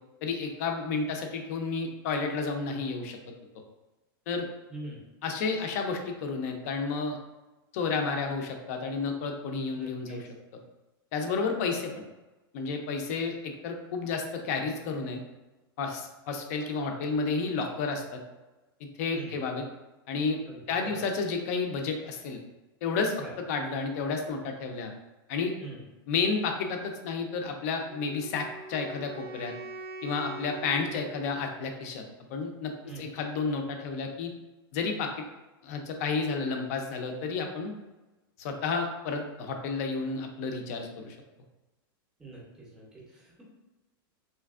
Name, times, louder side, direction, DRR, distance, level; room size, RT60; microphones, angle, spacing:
voice 1, 0.2-3.2 4.3-4.5 5.2-7.2 7.7-10.3 11.1-11.9 12.5-15.2 15.8-18.2 19.0-19.6 20.1-20.4 20.7-22.4 22.8-23.2 23.5-24.9 25.3-25.5 26.1-29.5 30.0-32.0 32.3-34.3 34.7-35.2 35.6-37.7 38.4-41.2, left 4 dB, 40° left, 4 dB, 0.4 m, -31 dB
voice 2, 4.7-5.0 9.7-10.2 19.1-19.3 20.5-21.0 23.2-23.3 25.6-25.8 32.9-33.0 42.2-43.4, right 3 dB, 5° right, -4 dB, 0.6 m, -44 dB
Wind instrument woodwind instrument, 27.9-32.0, right 1 dB, 85° right, 0.4 m, -44 dB
3.3 x 2.8 x 2.3 m, 1.1 s
supercardioid pair, 175°, 12 cm